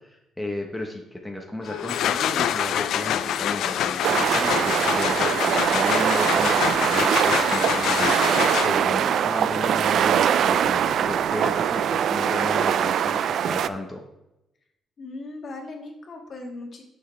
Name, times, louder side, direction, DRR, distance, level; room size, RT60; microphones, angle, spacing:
voice 1, 0.0-14.0, left 1 dB, 5° left, 1 dB, 1.0 m, -34 dB
sound 1, 1.6-9.0, left 10 dB, 80° left, 0.4 m, -26 dB
sound 2, 4.0-13.7, right 9 dB, 70° right, 0.3 m, -22 dB
voice 2, 15.0-16.8, left 2 dB, 50° left, 1 dB, 1.7 m, -38 dB
8.4 x 6.1 x 3.3 m, 0.90 s
cardioid pair, 90°, 0 cm